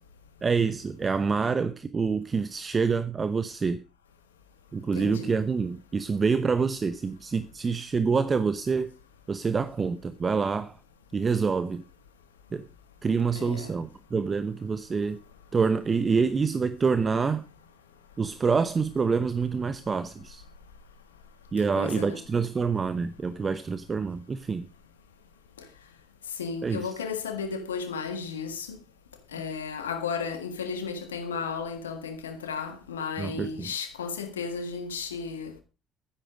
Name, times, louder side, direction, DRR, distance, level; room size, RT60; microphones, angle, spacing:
voice 1, 0.4-3.8 4.7-8.9 9.3-10.8 11.1-11.8 12.5-12.7 13.0-15.2 15.5-17.5 18.2-20.4 21.5-24.7 26.6-27.0 33.2-33.7, right 5 dB, 35° right, 0.9 m, -27 dB
voice 2, 4.9-5.3 13.3-13.7 21.7-22.2 26.4-28.8 29.3-35.6, left 5 dB, 90° left, 1.6 m, -34 dB
12.0 x 10.5 x 4.9 m
hypercardioid pair, 55°, 0 cm